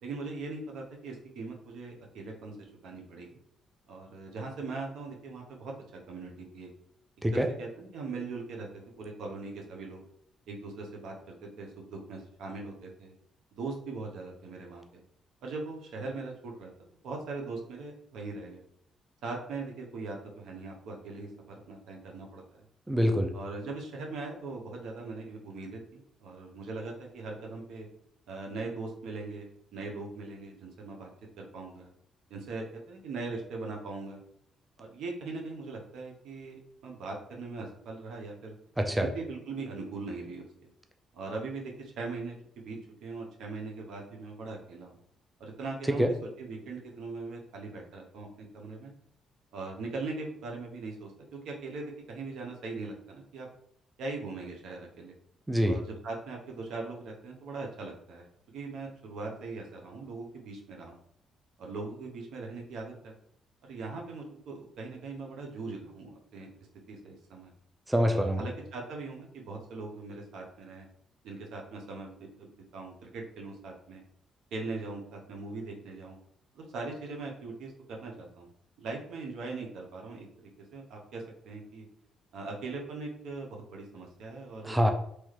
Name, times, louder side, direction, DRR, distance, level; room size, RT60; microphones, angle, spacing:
voice 1, 0.0-2.6 2.8-3.4 3.9-5.7 6.1-6.7 7.3-10.0 10.5-13.1 13.5-15.0 15.4-16.7 17.0-18.6 19.2-22.4 23.3-27.9 28.3-31.1 31.4-31.9 32.3-34.2 34.8-38.5 39.1-40.4 41.1-45.0 45.4-46.0 46.4-48.9 49.5-53.5 54.0-55.1 55.6-61.0 61.6-63.1 63.7-66.5 66.9-67.5 68.1-70.9 71.2-74.0 74.5-76.2 76.5-78.5 78.8-80.3 80.7-81.8 82.3-84.8, right 3 dB, 80° right, 1 dB, 0.7 m, -40 dB
voice 2, 22.9-23.3 38.8-39.1 45.9-46.1 55.5-55.8 67.9-68.4 84.6-84.9, equal, 10° right, 4 dB, 0.4 m, -25 dB
3.0 x 2.3 x 3.1 m, 0.71 s
cardioid pair, 90°, 0 cm